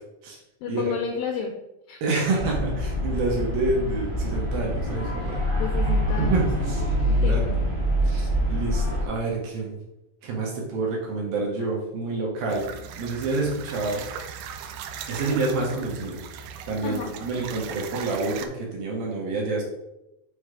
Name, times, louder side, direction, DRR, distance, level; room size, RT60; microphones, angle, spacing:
voice 1, 0.6-1.5 1.9-2.0 5.5-6.5 7.1-7.6 16.8-17.1, left 7 dB, 90° left, 3 dB, 2.0 m, -31 dB
voice 2, 2.0-5.5 6.2-7.6 8.0-9.8 10.2-12.7 13.0-14.0 15.1-16.2 16.7-19.6, right 3 dB, 70° right, -2 dB, 2.5 m, -28 dB
sound 1, 2.4-9.0, equal, 25° right, 1.2 m, -25 dB
sound 2, 12.5-18.5, right 7 dB, 85° right, 2.1 m, -38 dB
6.5 x 3.3 x 4.8 m, 0.91 s
omnidirectional pair, 4.8 m